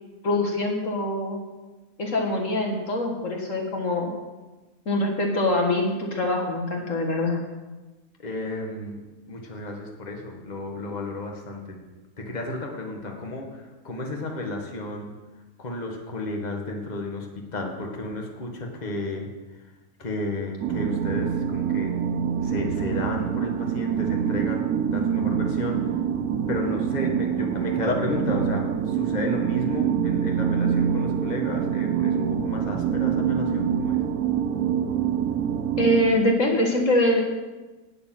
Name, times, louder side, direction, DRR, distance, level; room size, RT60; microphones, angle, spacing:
voice 1, 0.2-1.4 2.0-4.1 4.9-7.4 35.8-37.2, left 1 dB, 60° left, 1 dB, 2.1 m, -24 dB
voice 2, 8.2-11.8 12.2-15.2 15.6-19.3 20.0-21.9 22.4-25.8 26.5-34.0, left 2 dB, 30° left, 1 dB, 1.7 m, -32 dB
sound 1, 20.6-36.1, right 8 dB, 90° right, 1.2 m, -25 dB
11.0 x 6.9 x 9.2 m, 1.2 s
omnidirectional pair, 1.5 m